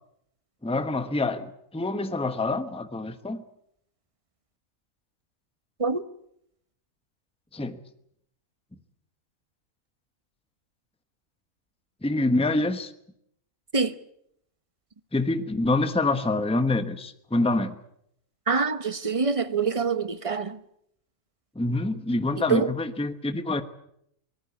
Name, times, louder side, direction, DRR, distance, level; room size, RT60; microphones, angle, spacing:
voice 1, 0.6-1.5 1.7-3.4 7.5-7.8 12.0-12.9 15.1-17.7 21.5-23.6, left 2 dB, 5° left, 1.0 m, -26 dB
voice 2, 18.5-20.6 22.5-22.7, right 5 dB, 30° right, 0.9 m, -25 dB
24.5 x 18.5 x 8.4 m
omnidirectional pair, 1.4 m